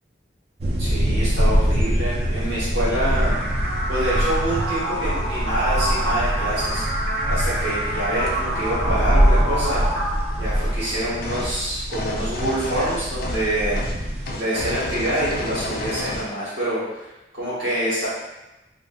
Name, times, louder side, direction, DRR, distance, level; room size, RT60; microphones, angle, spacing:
sound 1, 0.6-14.4, equal, 35° right, 0.3 m, -24 dB
voice 1, 0.8-3.3 3.9-6.8 7.3-9.8 10.4-13.8 14.3-18.1, right 1 dB, 60° right, -11 dB, 1.0 m, -26 dB
sound 2, 3.2-11.2, right 1 dB, 80° right, 1.1 m, -28 dB
sound 3, 11.2-11.6 11.9-13.5 13.8-14.0 14.3-16.3, left 2 dB, 50° left, 0.3 m, -30 dB
2.5 x 2.5 x 2.5 m, 1.0 s
head